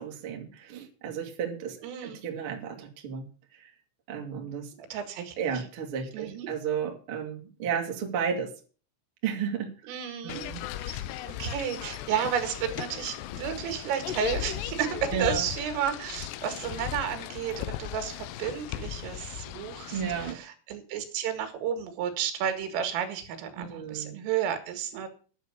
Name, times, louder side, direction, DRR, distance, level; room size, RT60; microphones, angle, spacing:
voice 1, 0.0-1.8 2.0-3.2 3.5-3.7 4.1-4.7 5.4-8.5 9.2-9.7 10.2-10.6 15.1-15.4 19.9-20.4 23.6-24.2, right 7 dB, 50° right, 2 dB, 1.7 m, -33 dB
voice 2, 1.8-2.2 4.9-5.4 6.1-6.5 9.9-10.4 10.8-11.0 11.4-25.1, right 8 dB, 85° right, 8 dB, 4.4 m, -32 dB
sound 1, 10.3-20.3, left 13 dB, 90° left, 2.3 m, -37 dB
11.0 x 7.0 x 8.2 m, 0.38 s
omnidirectional pair, 5.8 m